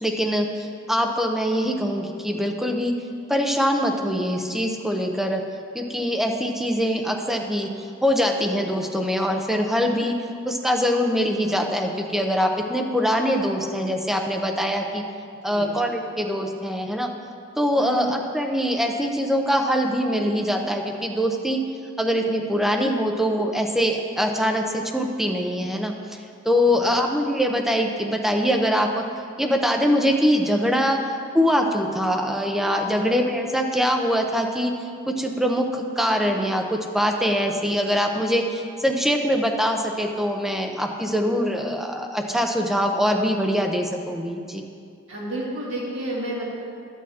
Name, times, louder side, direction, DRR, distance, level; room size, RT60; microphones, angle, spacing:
voice 1, 0.0-2.9 3.3-5.4 5.7-10.2 10.5-15.0 15.4-17.1 17.6-21.6 22.0-29.0 29.4-31.0 31.3-44.6, equal, ahead, 2 dB, 0.5 m, -23 dB
voice 2, 17.8-18.1 26.7-26.8 32.9-33.0 45.1-46.5, right 1 dB, 65° right, -5 dB, 2.0 m, -31 dB
11.5 x 8.4 x 2.8 m, 2.3 s
head